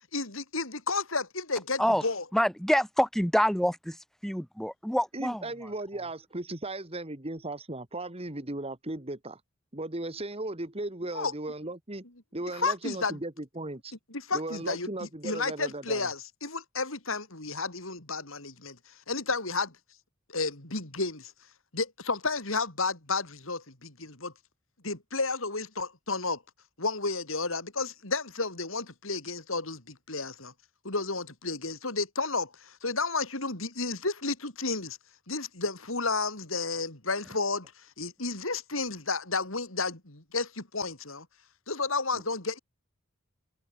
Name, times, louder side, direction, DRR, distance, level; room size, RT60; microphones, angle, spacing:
voice 1, 0.1-2.2 11.1-11.3 12.5-13.2 14.1-19.8 20.3-21.3 21.7-24.3 24.8-26.4 26.8-30.5 30.8-35.0 35.3-41.3 41.7-42.6, left 3 dB, 70° left, 5.1 m, -32 dB
voice 2, 2.3-5.7, equal, ahead, 2.9 m, -27 dB
voice 3, 5.1-9.4 9.7-12.0 12.3-13.9 14.3-16.1, right 2 dB, 30° right, 2.2 m, -36 dB
head